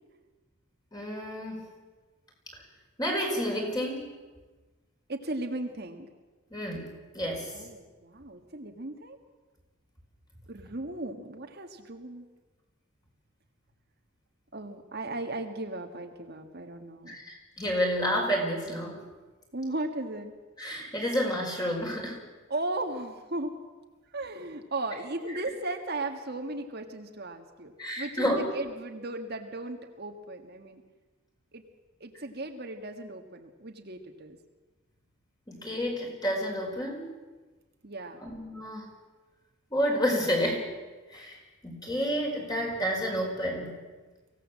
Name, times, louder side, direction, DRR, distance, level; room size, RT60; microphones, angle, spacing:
voice 1, 0.9-1.6 3.0-4.1 6.5-6.9 7.1-7.5 17.1-19.0 20.6-22.2 27.8-28.5 35.5-37.1 38.2-38.9 39.7-40.6 41.1-41.4 41.6-43.8, equal, 20° left, 0 dB, 5.0 m, -30 dB
voice 2, 5.1-6.1 7.5-9.2 10.5-12.3 14.5-17.2 19.5-20.3 22.5-23.6 24.1-30.8 31.5-31.6 32.0-34.4 37.8-38.3, right 2 dB, 50° right, 4 dB, 1.6 m, -36 dB
24.0 x 16.5 x 7.5 m, 1.3 s
head